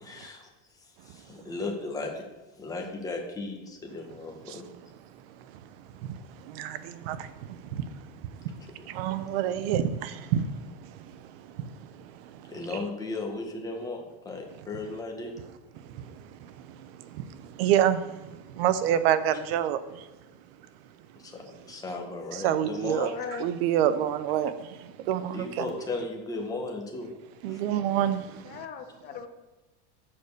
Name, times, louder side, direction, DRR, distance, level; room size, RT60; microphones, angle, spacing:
voice 1, 0.0-0.4 1.1-2.2 2.6-4.6 8.8-8.9 12.5-15.3 21.2-23.1 25.3-27.1 27.5-27.6, left 3 dB, 10° left, 1 dB, 1.0 m, -36 dB
voice 2, 5.3-12.8 14.5-14.7 15.7-20.1 21.5-21.6 22.3-23.1 23.4-25.7 27.4-28.6, right 10 dB, 65° right, 12 dB, 0.7 m, -29 dB
voice 3, 22.8-23.5 28.4-29.3, left 7 dB, 30° left, 6 dB, 0.8 m, -38 dB
7.0 x 5.1 x 6.5 m, 1.1 s
supercardioid pair, 165°, 33 cm